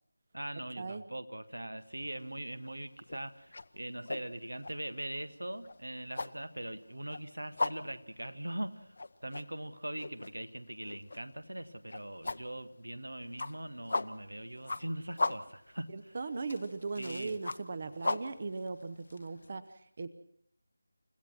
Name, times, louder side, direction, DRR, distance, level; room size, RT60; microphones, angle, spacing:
voice 1, 0.3-3.5 3.7-8.9 9.2-15.9 17.0-17.3, right 1 dB, 85° right, 12 dB, 1.7 m, -41 dB
sound 1, 1.9-2.2 2.6-19.5, left 3 dB, 50° left, 0.9 m, -38 dB
voice 2, 15.9-20.1, right 4 dB, 40° right, 14 dB, 0.9 m, -38 dB
29.5 x 15.5 x 6.1 m, 0.67 s
figure-of-eight pair, 165°, 0 cm